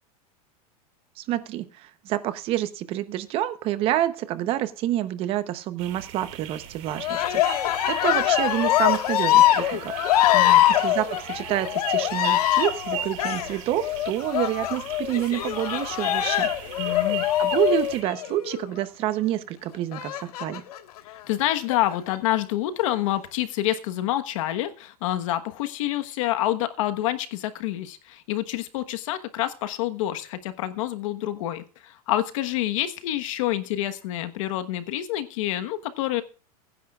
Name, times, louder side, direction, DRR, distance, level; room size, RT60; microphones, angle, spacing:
voice 1, 1.2-9.9 10.8-16.5 17.4-20.6, right 13 dB, 30° right, 12 dB, 0.8 m, -28 dB
sound 1, 5.8-18.0, right 12 dB, 55° right, 2.3 m, -38 dB
Cheering, 7.0-18.7 19.9-20.8 21.5-22.2, left 13 dB, 80° left, 1.6 m, -23 dB
voice 2, 10.3-10.6 16.8-17.2 21.1-36.2, left 14 dB, 55° left, 9 dB, 1.2 m, -27 dB
22.0 x 10.0 x 2.4 m, 0.37 s
supercardioid pair, 165°, 19 cm